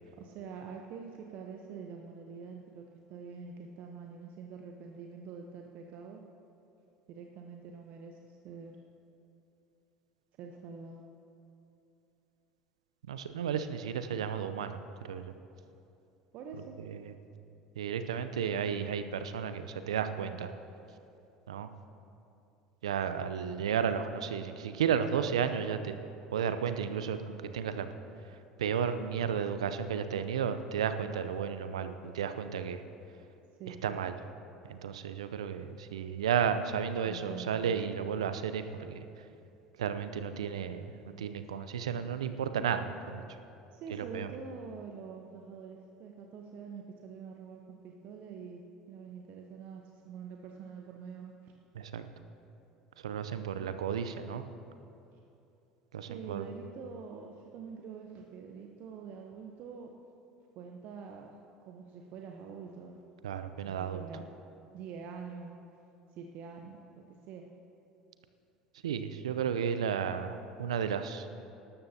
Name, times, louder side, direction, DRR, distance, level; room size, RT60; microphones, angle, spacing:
voice 1, 0.2-6.2 7.1-8.7 10.4-11.0 16.3-16.8 33.6-34.0 37.1-37.6 43.7-48.6 48.9-51.5 55.1-55.2 56.1-59.9 60.5-61.3 61.6-63.0 63.7-64.3 64.7-65.6 66.1-67.5, right 6 dB, 55° right, 2 dB, 0.9 m, -45 dB
voice 2, 13.1-14.8 15.0-15.3 16.8-17.1 17.8-20.5 21.5-21.7 22.8-25.9 26.3-27.9 28.6-32.8 33.7-34.1 34.7-39.1 39.8-43.2 43.9-44.3 51.7-52.1 53.0-54.4 55.9-56.5 63.2-64.1 68.8-71.3, right 7 dB, 80° right, 10 dB, 0.6 m, -33 dB
19.0 x 12.5 x 2.8 m, 2.7 s
figure-of-eight pair, 70°, 3 cm